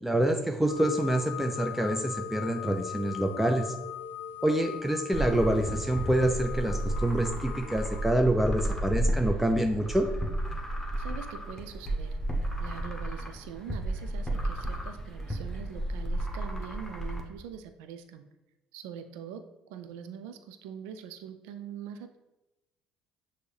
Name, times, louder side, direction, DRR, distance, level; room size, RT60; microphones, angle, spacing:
voice 1, 0.0-3.7 4.4-10.1, right 1 dB, 5° right, 4 dB, 0.4 m, -27 dB
sound 1, 0.7-8.1, left 9 dB, 55° left, 0.4 m, -40 dB
sound 2, 5.1-17.2, right 1 dB, 15° left, 1.0 m, -33 dB
voice 2, 11.0-12.2 12.6-18.2 18.7-22.2, right 8 dB, 80° right, 9 dB, 0.3 m, -43 dB
6.0 x 2.7 x 3.3 m, 1.0 s
hypercardioid pair, 60°, 3 cm